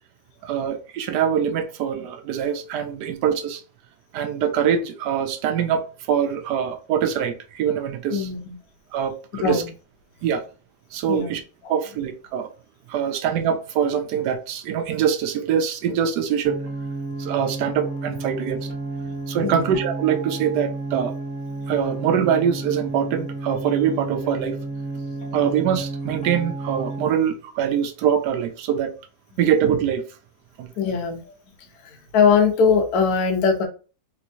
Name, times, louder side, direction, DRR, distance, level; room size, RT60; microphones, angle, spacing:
voice 1, 0.4-3.6 4.1-8.3 8.9-9.6 10.2-10.4 10.9-11.4 11.7-12.5 12.9-16.6 17.2-18.7 19.3-21.1 21.7-24.6 25.3-28.9 29.4-30.0 30.6-30.7, right 8 dB, 85° right, 1.2 m, -23 dB
voice 2, 8.1-8.5 9.4-9.7 11.1-11.4 11.6-11.8 19.0-19.2 19.4-19.7 30.8-31.3 31.8-33.7, left 6 dB, 70° left, 1.2 m, -21 dB
sound 1, 16.4-27.1, right 2 dB, 5° left, 0.6 m, -31 dB
3.4 x 3.0 x 2.5 m
omnidirectional pair, 1.7 m